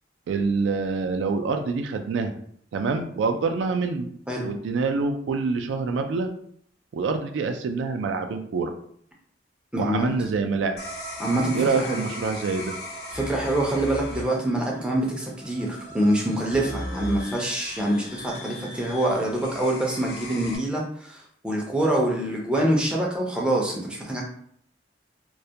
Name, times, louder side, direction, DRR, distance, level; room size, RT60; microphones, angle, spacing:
voice 1, 0.3-2.4 2.7-4.1 4.4-6.3 6.9-8.7 9.8-10.8 11.5-12.7, right 4 dB, 85° right, 6 dB, 0.3 m, -26 dB
voice 2, 9.7-10.1 11.2-12.1 13.1-24.2, right 1 dB, 5° right, -2 dB, 0.4 m, -25 dB
sound 1, 10.8-20.6, left 1 dB, 55° left, 0.5 m, -37 dB
2.2 x 2.1 x 2.7 m, 0.64 s
head